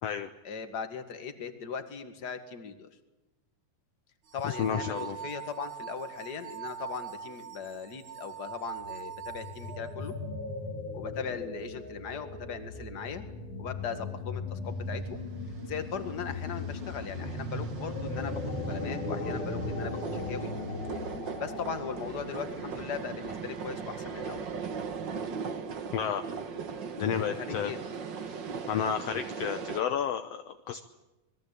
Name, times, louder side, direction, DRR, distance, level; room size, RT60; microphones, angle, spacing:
voice 1, 0.4-2.9 4.3-10.2 10.9-13.2 13.6-15.3 15.6-20.5 21.4-24.4 27.2-27.8, left 6 dB, 35° left, 8 dB, 2.2 m, -39 dB
sound 1, 4.3-10.1, right 8 dB, 85° right, 4.2 m, -42 dB
voice 2, 4.4-5.2 25.9-26.2 27.0-27.7 28.3-28.4 28.7-30.8, left 8 dB, 65° left, 8 dB, 1.9 m, -31 dB
sound 2, 8.8-22.9, left 2 dB, 85° left, 4.7 m, -37 dB
sound 3, 15.4-29.8, right 5 dB, 45° right, 1.8 m, -39 dB
27.5 x 22.0 x 8.5 m, 1.0 s
omnidirectional pair, 3.4 m